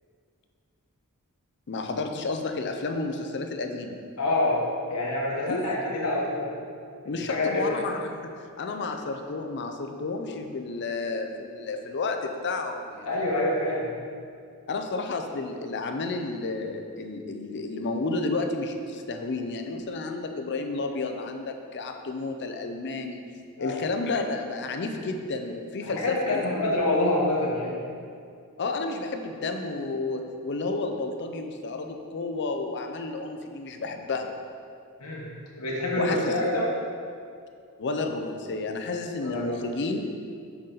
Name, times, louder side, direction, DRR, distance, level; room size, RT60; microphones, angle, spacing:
voice 1, 1.7-4.0 5.5-5.7 7.0-13.2 14.7-23.2 23.6-26.7 28.6-34.3 36.0-36.5 37.8-40.1, left 3 dB, 50° left, 5 dB, 0.6 m, -31 dB
voice 2, 4.2-4.6 4.9-6.5 7.0-7.7 13.0-13.9 23.6-23.8 25.8-27.7 35.0-35.2 35.6-36.7 39.2-39.6, left 2 dB, 85° left, -4 dB, 1.1 m, -26 dB
6.6 x 5.6 x 3.9 m, 2.3 s
head